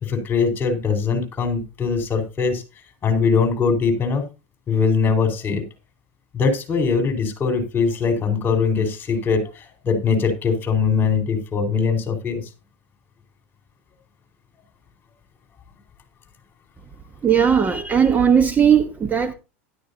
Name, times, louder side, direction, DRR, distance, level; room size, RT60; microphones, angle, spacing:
voice 1, 0.0-2.6 3.0-4.2 4.7-5.6 6.3-12.5, left 5 dB, 25° left, 4.4 m, -21 dB
voice 2, 17.2-19.3, right 7 dB, 25° right, 1.1 m, -17 dB
13.5 x 12.0 x 2.7 m
supercardioid pair, 110°, 7 cm